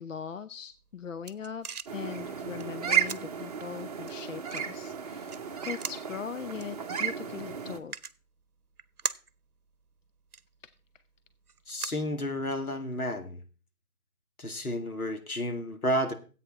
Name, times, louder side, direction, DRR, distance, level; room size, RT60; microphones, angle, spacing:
voice 1, 0.0-1.7 1.9-5.4 5.6-7.9, left 7 dB, 60° left, 12 dB, 0.6 m, -40 dB
sound 1, 0.7-12.8, right 5 dB, 85° right, 0.8 m, -44 dB
sound 2, 1.9-7.8, right 8 dB, 25° right, 0.8 m, -33 dB
voice 2, 11.7-13.4 14.4-16.1, equal, 80° left, 6 dB, 2.0 m, -31 dB
12.5 x 8.4 x 4.1 m, 0.36 s
figure-of-eight pair, 145°, 44 cm